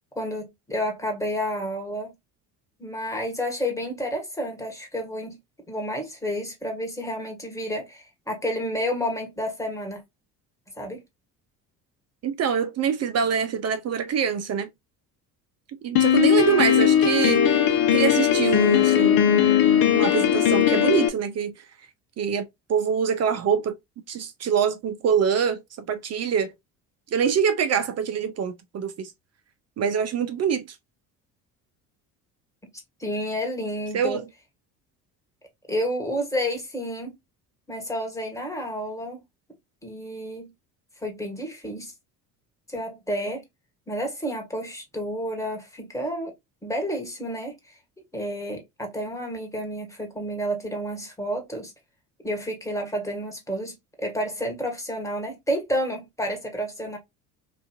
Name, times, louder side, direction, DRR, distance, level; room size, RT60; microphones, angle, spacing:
voice 1, 0.1-2.1 2.8-5.4 5.7-10.0 10.8-11.0 33.0-34.2 35.7-37.2 37.7-39.2 39.8-40.5 41.0-41.9 42.7-43.4 43.9-46.3 46.6-47.5 48.1-51.7 52.2-57.0, equal, 5° left, 1.4 m, -30 dB
voice 2, 12.2-14.7 15.8-17.5 17.9-19.6 19.9-21.5 22.2-23.7 24.1-25.6 25.9-26.5 27.1-29.1 29.8-30.7 33.9-34.3, right 7 dB, 35° right, 0.5 m, -25 dB
Piano, 16.0-21.1, left 9 dB, 50° left, 0.8 m, -19 dB
3.0 x 2.4 x 2.4 m
hypercardioid pair, 65°, 47 cm